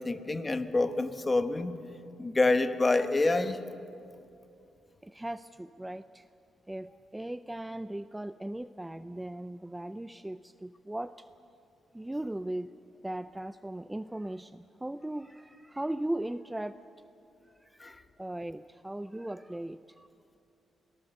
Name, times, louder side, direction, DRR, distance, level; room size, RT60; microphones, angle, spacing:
voice 1, 0.0-1.8 2.2-3.6 17.8-18.0, left 2 dB, 25° left, 10 dB, 1.2 m, -27 dB
voice 2, 5.0-6.3 6.7-11.3 11.9-12.7 13.0-16.8 17.4-17.8 18.2-20.1, right 1 dB, 10° right, 12 dB, 0.4 m, -38 dB
26.0 x 18.0 x 6.6 m, 2.6 s
cardioid pair, 100°, 0 cm